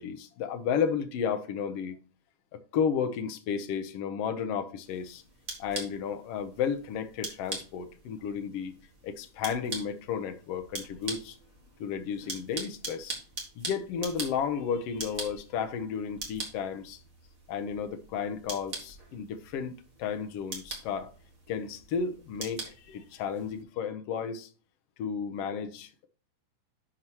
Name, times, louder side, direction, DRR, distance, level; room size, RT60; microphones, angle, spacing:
voice 1, 0.0-2.0 2.7-5.2 5.6-8.7 9.0-11.4 11.8-13.2 13.6-17.0 17.5-21.1 21.5-24.5 25.0-26.1, left 7 dB, 70° left, 1.5 m, -33 dB
sound 1, 4.8-23.6, right 3 dB, 30° right, 1.9 m, -43 dB
11.5 x 4.7 x 2.9 m
omnidirectional pair, 3.6 m